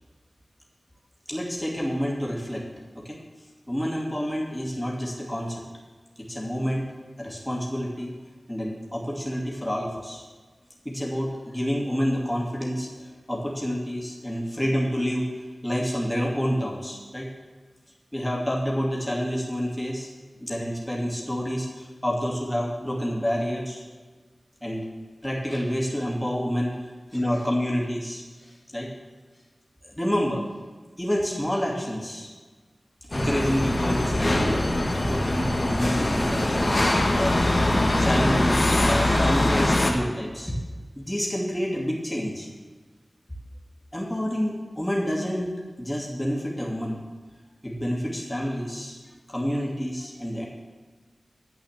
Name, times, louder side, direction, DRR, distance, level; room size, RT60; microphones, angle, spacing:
voice 1, 1.3-2.7 2.9-3.2 3.7-5.6 6.2-6.9 7.2-8.1 8.5-10.2 10.8-15.2 15.6-17.3 18.1-20.1 20.4-23.8 24.6-24.9 25.2-26.7 27.1-28.9 29.8-30.5 31.0-32.3 33.1-34.5 34.9-36.8 37.1-37.4 38.0-40.5 41.0-42.5 43.9-45.5 45.8-47.0 47.6-50.5, equal, 15° left, -2 dB, 2.5 m, -28 dB
sound 1, 33.1-39.9, left 1 dB, 45° left, 2.0 m, -22 dB
10.5 x 8.4 x 7.4 m, 1.3 s
wide cardioid pair, 50°, 0 cm